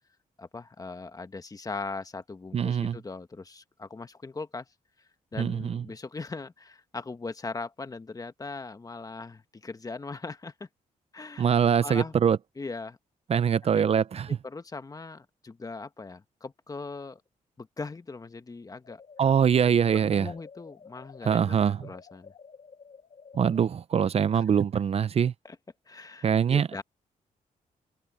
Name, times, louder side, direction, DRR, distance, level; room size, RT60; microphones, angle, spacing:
voice 1, 0.4-4.7 5.3-10.7 11.1-11.5 11.8-12.1 12.6-13.0 14.4-17.2 17.6-19.0 19.9-21.6 21.8-22.3 24.3-24.4 25.4-25.6 25.9-26.8, left 3 dB, 25° left, 1.4 m, -39 dB
voice 2, 2.5-3.0 5.4-5.8 11.4-12.4 13.3-14.3 19.2-20.3 21.2-21.8 23.3-25.3 26.2-26.8, right 8 dB, 45° right, 0.5 m, -23 dB
sound 1, 18.8-23.7, left 5 dB, 50° left, 4.6 m, -51 dB
cardioid pair, 100°, 14 cm